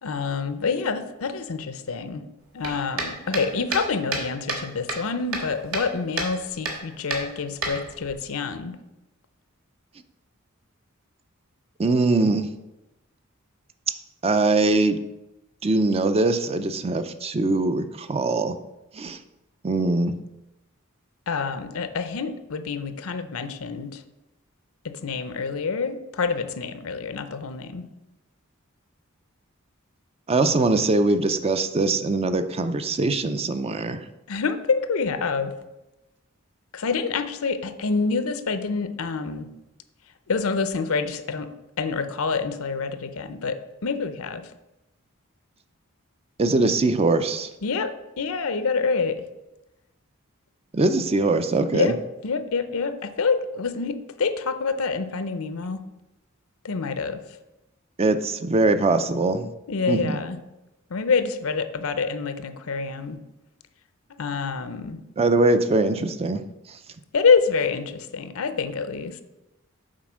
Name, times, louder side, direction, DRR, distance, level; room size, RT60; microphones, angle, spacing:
voice 1, 0.0-2.2 2.5-8.8 21.3-24.0 24.8-27.9 34.3-35.5 36.7-39.5 40.3-41.5 41.8-43.6 43.8-44.4 47.6-49.2 51.7-52.0 52.2-55.8 56.6-57.2 59.7-60.4 60.9-63.2 64.2-65.0 67.1-69.2, left 5 dB, 75° left, 11 dB, 0.6 m, -27 dB
sound 1, 2.6-4.6 4.9-5.9 6.2-6.3 6.6-6.8 7.1-8.1, right 3 dB, 75° right, 1.7 m, -29 dB
voice 2, 11.8-12.5 14.2-15.0 15.6-18.6 18.9-19.2 19.6-20.2 30.3-34.0 46.4-47.5 50.7-51.9 58.0-59.5 59.9-60.2 65.2-66.4, right 2 dB, 30° right, 10 dB, 0.4 m, -22 dB
7.5 x 4.3 x 6.1 m, 0.96 s
head